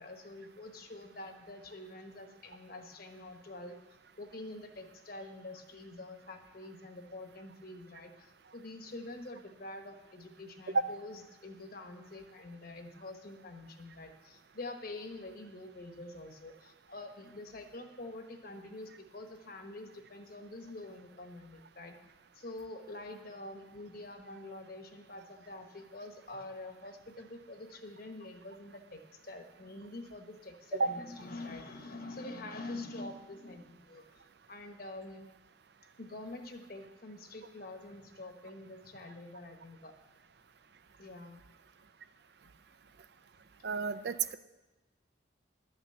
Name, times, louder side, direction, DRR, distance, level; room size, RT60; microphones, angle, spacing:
voice 1, 0.0-3.8 4.2-22.0 22.3-34.2 34.5-35.3 36.0-39.9 41.0-41.4, left 2 dB, 50° left, 5 dB, 1.2 m, -46 dB
voice 2, 43.6-44.4, right 4 dB, 60° right, 12 dB, 0.5 m, -30 dB
11.5 x 6.0 x 7.9 m, 1.1 s
head